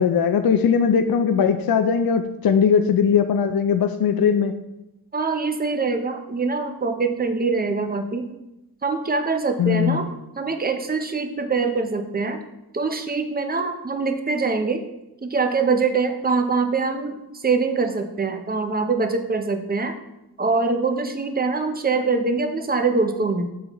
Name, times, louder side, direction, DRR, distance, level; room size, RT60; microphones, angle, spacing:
voice 1, 0.0-4.5 9.6-10.0, left 7 dB, 65° left, 8 dB, 0.5 m, -19 dB
voice 2, 5.1-8.3 8.8-10.1 10.4-12.4 12.7-14.8 15.2-17.1 17.4-19.9 20.4-23.5, right 4 dB, 25° right, 6 dB, 0.7 m, -23 dB
11.0 x 4.0 x 3.0 m, 0.92 s
wide cardioid pair, 95°, 39 cm